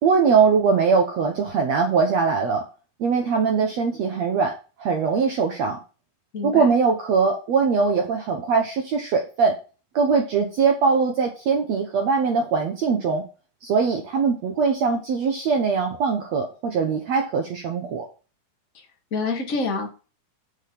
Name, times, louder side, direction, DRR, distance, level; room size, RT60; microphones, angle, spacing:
voice 1, 0.0-2.6 3.0-4.5 4.8-5.8 6.4-9.5 9.9-13.2 13.6-18.1, right 5 dB, 70° right, 2 dB, 1.6 m, -21 dB
voice 2, 6.3-6.7 19.1-19.9, left 4 dB, 35° left, 0 dB, 1.4 m, -26 dB
7.4 x 6.6 x 6.0 m, 0.35 s
omnidirectional pair, 4.5 m